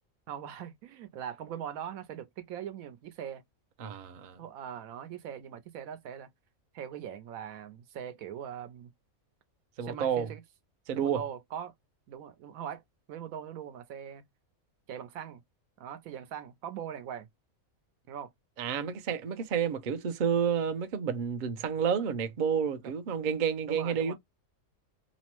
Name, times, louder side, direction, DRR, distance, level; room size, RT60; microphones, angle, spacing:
voice 1, 0.3-3.4 4.4-6.3 6.7-8.9 9.8-10.4 11.0-11.7 12.1-12.8 13.1-14.2 14.9-15.4 15.8-17.3 18.1-18.3 22.8-22.9 23.7-24.1, right 9 dB, 85° right, 1.1 m, -41 dB
voice 2, 3.8-4.4 9.8-10.3 10.9-11.2 18.6-24.1, right 7 dB, 60° right, 0.5 m, -30 dB
3.0 x 2.0 x 2.9 m
omnidirectional pair, 1.5 m